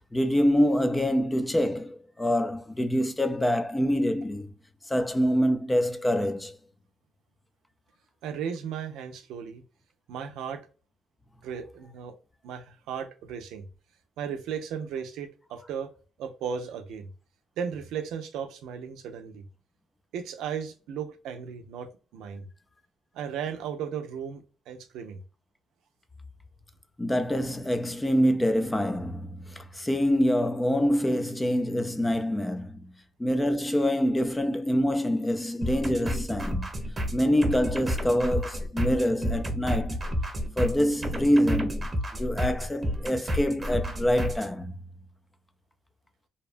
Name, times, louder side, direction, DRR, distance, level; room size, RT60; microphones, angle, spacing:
voice 1, 0.1-4.5 4.9-6.6 27.0-32.9 33.2-36.7 37.1-40.0 40.6-41.8 42.1-44.8, equal, 15° left, 0.4 m, -25 dB
voice 2, 8.2-9.6 10.1-10.6 11.4-12.1 12.4-13.6 14.2-15.9 16.2-17.1 17.6-19.5 20.1-22.4 23.1-25.2, right 7 dB, 90° right, 0.5 m, -35 dB
sound 1, 35.6-44.5, equal, 25° right, 1.0 m, -31 dB
2.7 x 2.2 x 2.4 m
cardioid pair, 90°, 0 cm